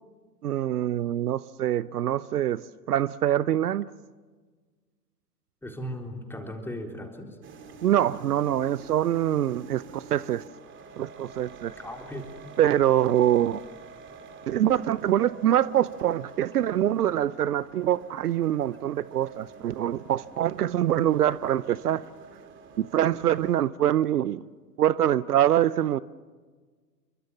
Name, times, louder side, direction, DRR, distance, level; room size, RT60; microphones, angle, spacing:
voice 1, 0.4-2.6 2.9-3.9 7.8-10.4 11.0-11.7 12.6-13.6 14.5-22.0 22.8-24.5 24.8-26.0, right 11 dB, 65° right, 0.8 m, -24 dB
voice 2, 5.6-7.4 11.8-12.3, equal, 5° left, 3.8 m, -37 dB
sound 1, 7.4-23.6, right 5 dB, 25° right, 2.8 m, -48 dB
28.0 x 24.0 x 7.2 m
figure-of-eight pair, 105°, 50 cm